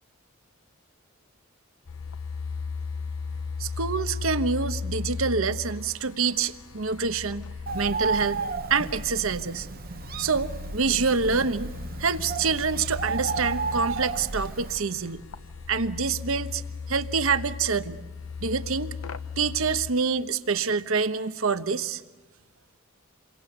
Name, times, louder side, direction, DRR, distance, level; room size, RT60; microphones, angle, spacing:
sound 1, 1.9-19.9, left 5 dB, 80° left, 0.9 m, -37 dB
voice 1, 3.6-7.5 7.7-8.4 8.7-9.7 10.2-11.7 12.0-15.2 15.7-16.6 16.9-18.0 18.4-18.9 19.4-22.0, right 5 dB, 75° right, 11 dB, 1.1 m, -26 dB
Bird, 7.7-14.8, right 4 dB, 45° right, 0.8 m, -32 dB
28.5 x 23.5 x 8.0 m, 1.2 s
head